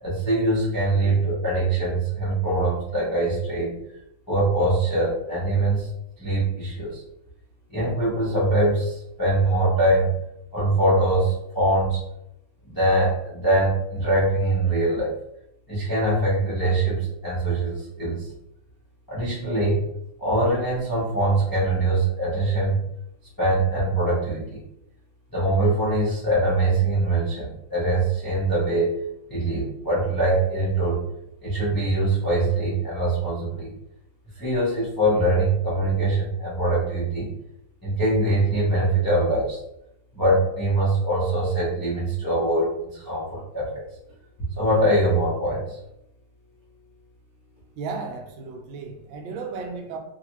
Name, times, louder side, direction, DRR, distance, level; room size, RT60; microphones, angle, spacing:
voice 1, 0.0-3.7 4.3-5.9 6.2-7.0 7.7-10.1 10.5-12.0 12.7-15.1 15.7-18.2 19.1-19.8 20.2-22.8 23.4-24.6 25.3-28.9 29.3-31.0 31.4-33.7 34.4-37.3 37.8-39.6 40.1-43.8 44.6-45.6, right 2 dB, 20° left, 0.5 m, -23 dB
voice 2, 47.8-50.0, right 4 dB, 85° right, 1.3 m, -34 dB
3.2 x 2.5 x 3.0 m
omnidirectional pair, 2.1 m